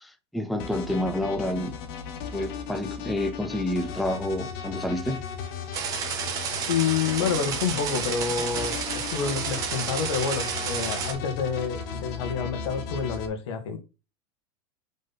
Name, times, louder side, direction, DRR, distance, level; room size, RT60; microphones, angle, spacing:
voice 1, 0.0-1.7 2.3-5.2, left 1 dB, ahead, 0.4 m, -29 dB
sound 1, 0.6-13.3, left 6 dB, 50° left, 1.3 m, -36 dB
sound 2, 5.7-11.1, right 7 dB, 25° right, 1.4 m, -31 dB
voice 2, 6.7-13.8, left 6 dB, 85° left, 2.0 m, -28 dB
5.2 x 3.9 x 5.7 m
supercardioid pair, 175°, 14 cm